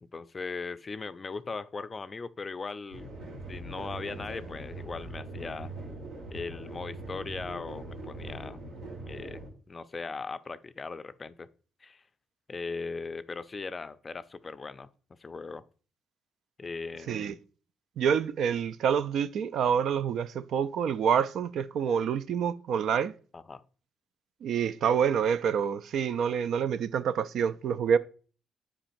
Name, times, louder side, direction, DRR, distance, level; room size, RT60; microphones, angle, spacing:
voice 1, 0.0-3.1 3.5-5.7 6.3-8.6 9.0-11.5 11.8-12.0 12.5-14.9 15.2-15.6 16.6-17.4 23.3-23.6, left 4 dB, 30° left, 0.4 m, -39 dB
sound 1, 2.9-9.5, right 2 dB, 90° right, 2.3 m, -41 dB
voice 2, 18.0-23.1 24.4-28.0, right 7 dB, 70° right, 0.3 m, -27 dB
8.7 x 4.8 x 2.5 m
cardioid pair, 90°, 0 cm